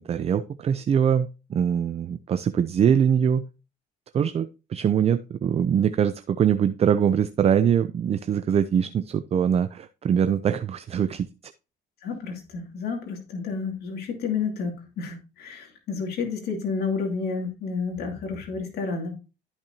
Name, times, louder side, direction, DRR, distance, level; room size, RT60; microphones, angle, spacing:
voice 1, 0.0-3.4 4.1-11.5, right 8 dB, 40° right, 12 dB, 0.5 m, -23 dB
voice 2, 12.0-19.1, left 5 dB, 70° left, 2 dB, 2.5 m, -30 dB
12.5 x 5.8 x 2.8 m, 0.30 s
cardioid pair, 110°, 17 cm